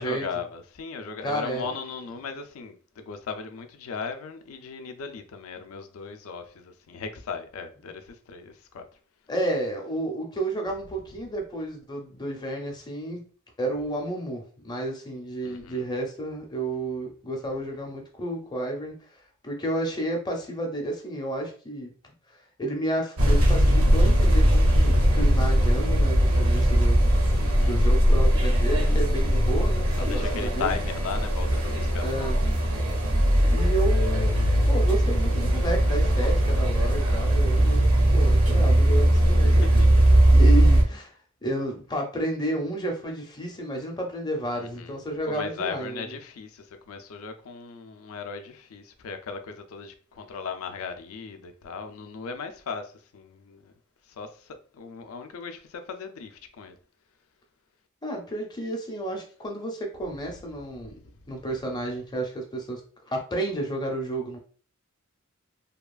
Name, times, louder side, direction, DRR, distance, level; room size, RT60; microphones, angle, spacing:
voice 1, 0.0-8.9 15.4-15.9 27.4-27.8 30.0-32.4 39.3-40.1 44.5-45.0 45.3-53.7 54.1-56.7, left 5 dB, 70° left, 0.4 m, -37 dB
voice 2, 1.2-1.7 9.3-13.3 13.6-21.9 22.3-27.1 27.5-30.7 32.0-32.4 33.5-37.9 38.1-39.9 40.3-41.1 41.4-46.1 58.0-61.0 61.3-62.8 63.1-64.4, right 1 dB, 20° left, 0.6 m, -31 dB
sound 1, 23.2-40.8, right 1 dB, 70° right, 0.7 m, -20 dB
2.8 x 2.3 x 2.3 m
head